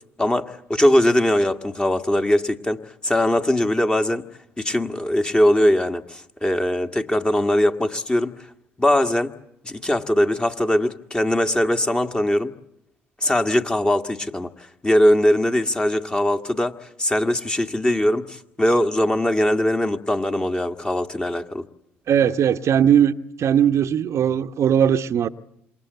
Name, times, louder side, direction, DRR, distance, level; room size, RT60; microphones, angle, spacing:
voice 1, 0.2-4.2 4.6-8.5 8.8-9.3 9.6-12.5 13.2-21.6, left 1 dB, 15° left, 1.8 m, -21 dB
voice 2, 22.1-25.3, right 9 dB, 55° right, 1.0 m, -19 dB
27.5 x 23.0 x 8.2 m
hypercardioid pair, 65°, 6 cm